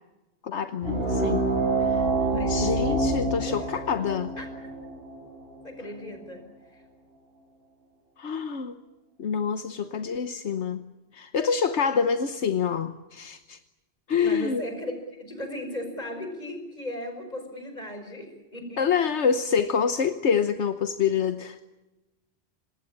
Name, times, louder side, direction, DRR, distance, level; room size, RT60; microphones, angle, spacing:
voice 1, 0.4-1.4 1.9-2.1 2.5-4.3 8.2-8.8 9.2-10.8 11.1-13.6 14.1-14.6 18.8-21.6, left 6 dB, 80° left, 9 dB, 1.3 m, -26 dB
sound 1, 0.8-5.9, right 2 dB, 55° right, 6.9 m, -27 dB
voice 2, 2.2-3.7 4.4-4.5 5.6-6.5 6.7-6.8 14.2-18.8, equal, 35° left, 6 dB, 5.5 m, -37 dB
26.0 x 20.0 x 8.7 m, 1.0 s
omnidirectional pair, 1.2 m